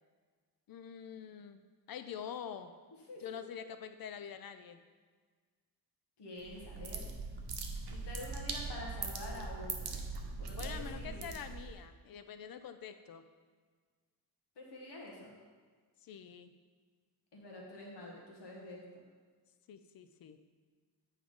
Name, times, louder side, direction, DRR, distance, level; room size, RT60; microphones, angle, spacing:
voice 1, 0.7-2.7 3.2-4.8 10.6-13.3 16.0-16.6 19.7-20.4, left 8 dB, 60° left, 10 dB, 0.6 m, -46 dB
voice 2, 6.2-7.1 7.9-10.0 10.4-11.3 14.5-15.3 17.3-18.8, left 2 dB, 85° left, -2 dB, 1.6 m, -47 dB
sound 1, 6.4-11.8, right 4 dB, 75° right, 0.9 m, -41 dB
8.2 x 4.7 x 3.8 m, 1.5 s
wide cardioid pair, 120°, 40 cm